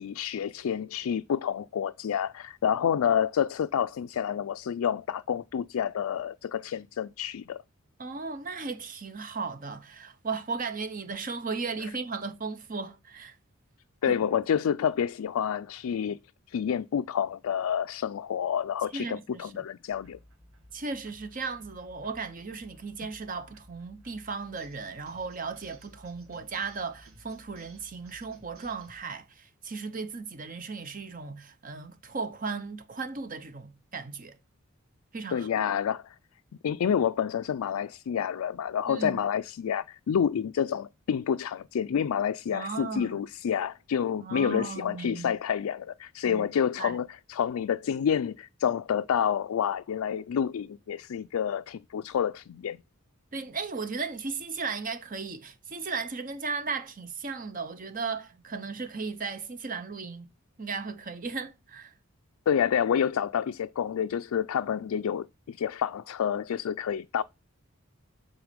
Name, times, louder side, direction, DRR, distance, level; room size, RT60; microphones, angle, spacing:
voice 1, 0.0-7.6 14.0-16.2 16.5-20.2 35.3-36.1 36.6-52.8 62.5-67.2, left 8 dB, 85° left, 0.4 m, -28 dB
voice 2, 8.0-13.4 14.0-14.2 18.9-19.5 20.7-34.4 35.1-35.5 38.9-39.2 42.5-43.2 44.2-45.4 46.3-46.4 46.8-47.0 53.3-60.3 60.6-61.9, right 4 dB, 40° right, 0.7 m, -36 dB
sound 1, 19.9-29.0, equal, 80° right, 2.6 m, -55 dB
7.9 x 4.2 x 5.1 m
head